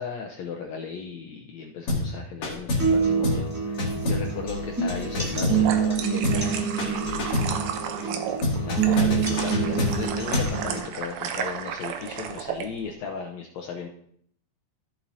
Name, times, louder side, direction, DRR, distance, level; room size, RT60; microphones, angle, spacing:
voice 1, 0.0-7.6 7.9-8.3 8.6-13.9, left 6 dB, 75° left, 1 dB, 1.6 m, -36 dB
sound 1, 1.9-2.1 2.4-3.0 3.2-3.5 3.8-5.9 6.2-6.5 6.8-7.6 8.4-10.6, left 2 dB, 50° left, 2.7 m, -27 dB
sound 2, 2.8-10.8, right 6 dB, 5° right, 1.3 m, -27 dB
sound 3, 5.2-12.7, right 8 dB, 85° right, 2.4 m, -33 dB
14.0 x 7.2 x 2.7 m, 0.66 s
omnidirectional pair, 3.9 m